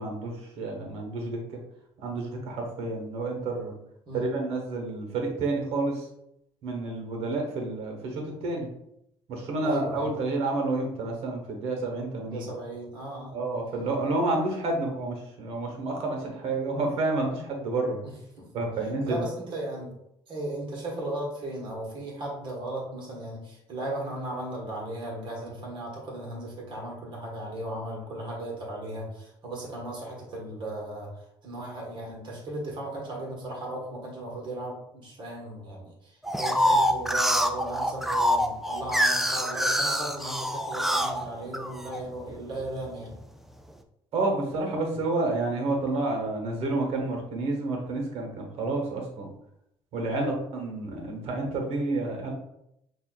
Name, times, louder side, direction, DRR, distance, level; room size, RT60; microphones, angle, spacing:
voice 1, 0.0-1.6 2.0-3.7 4.1-6.1 6.6-8.7 9.3-12.5 13.3-18.0 18.5-19.3 44.1-49.3 49.9-52.3, right 2 dB, 60° right, 2 dB, 1.2 m, -29 dB
voice 2, 9.6-10.1 12.3-13.4 18.0-18.5 19.1-19.9 20.3-43.1 50.1-50.3, right 1 dB, 45° right, -2 dB, 1.5 m, -36 dB
sound 1, 36.2-42.0 42.5-43.2, equal, ahead, 0.3 m, -25 dB
5.5 x 2.5 x 2.4 m, 0.80 s
supercardioid pair, 100°, 12 cm